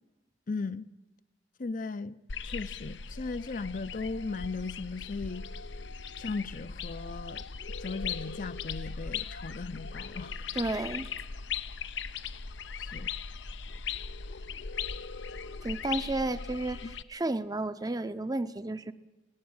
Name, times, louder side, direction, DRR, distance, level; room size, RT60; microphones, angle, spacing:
voice 1, 0.5-0.9 1.6-2.2 2.4-5.4 6.2-7.4 7.8-10.4 12.8-13.1 16.8-17.0, left 4 dB, 50° left, 0.6 m, -37 dB
sound 1, 2.3-17.0, left 6 dB, 85° left, 0.8 m, -39 dB
voice 2, 10.5-11.1 15.6-18.9, right 2 dB, 20° right, 0.7 m, -32 dB
21.0 x 16.5 x 8.8 m
head